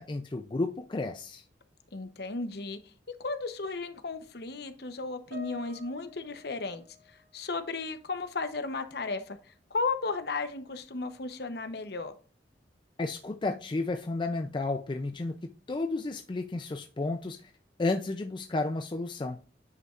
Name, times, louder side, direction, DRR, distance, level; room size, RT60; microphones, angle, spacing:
voice 1, 0.0-1.4 13.0-15.4 15.7-17.5 17.8-19.4, left 2 dB, 25° left, 0.4 m, -32 dB
voice 2, 1.9-2.8 3.2-6.8 7.3-9.4 9.7-12.1, left 3 dB, 55° left, 0.8 m, -34 dB
Piano, 5.3-8.0 8.2-8.5 9.3-9.4, left 3 dB, 75° right, 3.8 m, -50 dB
9.6 x 5.3 x 2.4 m
head